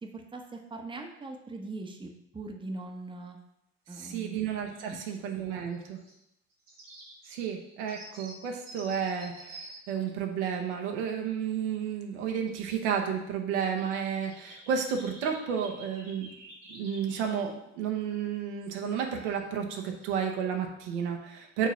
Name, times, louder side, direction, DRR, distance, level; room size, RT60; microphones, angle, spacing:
voice 1, 0.0-3.4 3.9-4.4 4.9-5.2 5.5-5.8, right 2 dB, 15° right, 2 dB, 0.9 m, -41 dB
voice 2, 4.0-6.0 7.3-16.3 16.7-21.7, right 7 dB, 65° right, 2 dB, 1.0 m, -32 dB
sound 1, 4.4-5.0 5.3-6.1 6.5-10.7 11.4-12.0 12.4-12.5 12.9-13.0 13.5-17.5 18.2-18.3 18.6-19.4 19.7-20.1, right 1 dB, 85° right, 1.8 m, -51 dB
5.1 x 4.0 x 5.6 m, 0.83 s
figure-of-eight pair, 60°, 37 cm